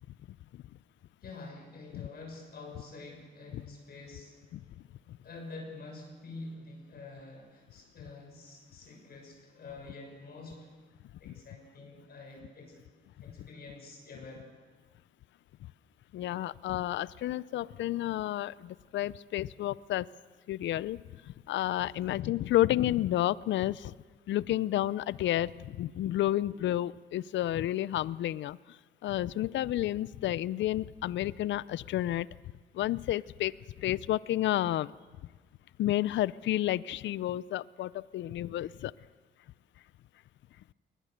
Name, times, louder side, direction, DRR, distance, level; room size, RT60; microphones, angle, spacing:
voice 1, 1.2-10.8 11.2-12.8 13.2-14.5, left 3 dB, 50° left, 1 dB, 6.7 m, -47 dB
voice 2, 16.1-20.1 20.5-21.0 21.5-23.9 24.3-28.6 29.0-32.3 32.7-33.5 33.8-34.9 35.8-38.9, left 13 dB, 70° left, 20 dB, 0.5 m, -30 dB
22.0 x 20.0 x 6.7 m, 1.4 s
cardioid pair, 90°, 20 cm